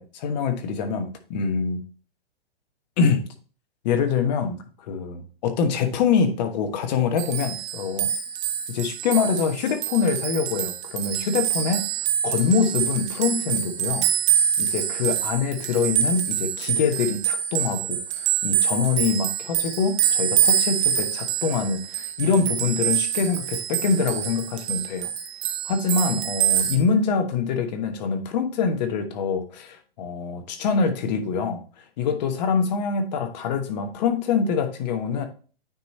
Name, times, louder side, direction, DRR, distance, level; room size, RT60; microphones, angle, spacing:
voice 1, 0.0-1.8 3.0-3.3 3.8-4.6 4.9-8.1 8.7-11.9 12.2-14.1 14.6-25.1 25.6-31.6 32.0-35.3, left 5 dB, 45° left, 7 dB, 1.2 m, -24 dB
sound 1, 7.2-26.8, right 10 dB, 25° right, 0.7 m, -26 dB
9.3 x 3.1 x 4.1 m, 0.40 s
hypercardioid pair, 140°, 30 cm